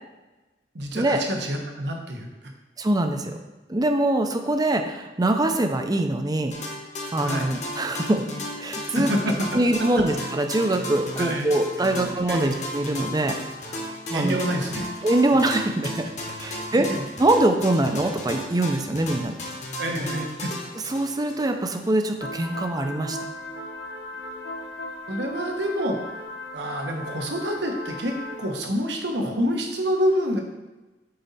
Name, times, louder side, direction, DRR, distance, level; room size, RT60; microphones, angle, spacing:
voice 1, 0.7-2.3 7.2-7.5 8.9-9.6 9.9-10.0 11.2-11.5 11.8-12.6 14.1-14.9 16.7-17.0 19.8-20.5 25.1-26.2 26.5-30.4, equal, 70° right, 2 dB, 1.1 m, -27 dB
voice 2, 2.8-3.4 3.7-6.6 7.1-8.3 8.6-9.1 9.5-13.4 14.1-14.4 15.0-16.1 16.4-16.9 17.2-19.4 20.9-23.2, right 1 dB, 20° right, 5 dB, 0.5 m, -23 dB
sound 1, 6.5-21.9, left 1 dB, 40° left, 1.2 m, -35 dB
sound 2, 22.2-28.5, left 1 dB, 75° left, 0.9 m, -37 dB
7.7 x 4.1 x 4.1 m, 1.1 s
head